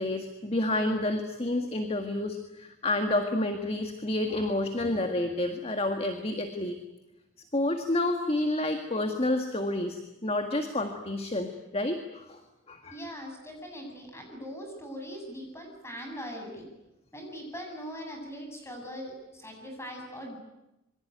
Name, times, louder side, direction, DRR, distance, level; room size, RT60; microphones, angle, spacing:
voice 1, 0.0-6.8 7.5-12.4 12.7-13.0, left 1 dB, 30° left, 5 dB, 1.9 m, -29 dB
voice 2, 12.9-16.7 17.1-20.4, equal, 15° left, 3 dB, 7.7 m, -41 dB
27.0 x 23.5 x 9.4 m, 0.93 s
head